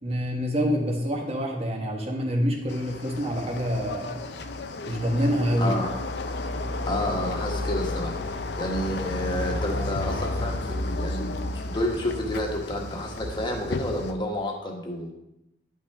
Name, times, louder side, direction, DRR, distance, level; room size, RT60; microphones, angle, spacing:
voice 1, 0.0-4.2 4.8-5.7, equal, 35° right, 1 dB, 1.3 m, -26 dB
sound 1, 2.7-14.1, left 2 dB, 70° left, 0.6 m, -32 dB
voice 2, 5.6-5.9 6.9-8.1 8.5-15.1, left 1 dB, 25° left, 1 dB, 1.3 m, -30 dB
10.5 x 5.6 x 3.5 m, 0.86 s
head